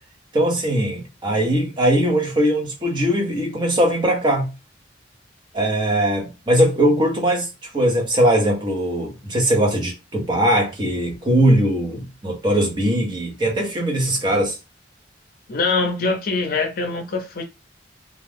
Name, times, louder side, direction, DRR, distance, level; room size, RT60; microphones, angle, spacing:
voice 1, 0.3-4.5 5.5-7.5 7.7-14.6, right 1 dB, 25° right, 0.8 m, -20 dB
voice 2, 15.5-17.4, left 3 dB, 50° left, 0.6 m, -23 dB
2.4 x 2.2 x 3.3 m
head